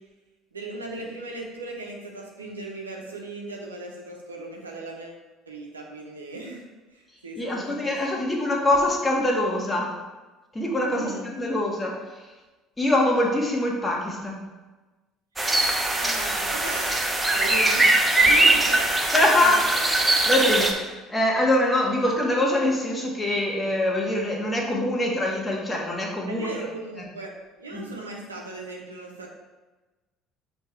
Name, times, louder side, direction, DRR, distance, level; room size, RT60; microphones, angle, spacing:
voice 1, 0.5-5.2 5.5-6.6 6.9-8.1 10.9-11.3 15.9-18.9 19.2-19.9 20.6-20.7 26.3-27.3 27.6-29.3, right 2 dB, 90° right, 0 dB, 0.8 m, -37 dB
voice 2, 7.3-9.9 10.5-12.0 12.8-14.4 19.1-19.7 20.2-20.8 21.1-26.5 27.7-27.9, left 1 dB, 20° left, -2 dB, 1.6 m, -24 dB
sound 1, 15.4-20.7, right 2 dB, 15° right, 0.9 m, -21 dB
6.4 x 3.4 x 4.4 m, 1.2 s
hypercardioid pair, 60°, 0 cm